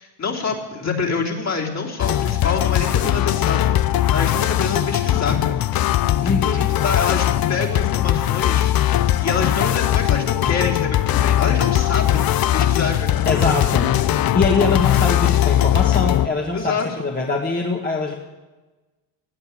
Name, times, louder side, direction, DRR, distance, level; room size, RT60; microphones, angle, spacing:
voice 1, 0.0-5.6 6.4-13.6 14.0-14.1 16.5-17.0, left 4 dB, 40° left, -1 dB, 3.3 m, -26 dB
sound 1, 2.0-16.3, left 12 dB, 55° left, 0.7 m, -19 dB
voice 2, 6.2-6.7 13.3-13.9 14.3-18.1, left 3 dB, 20° left, -1 dB, 1.9 m, -23 dB
17.5 x 8.3 x 8.7 m, 1.2 s
cardioid pair, 90°, 43 cm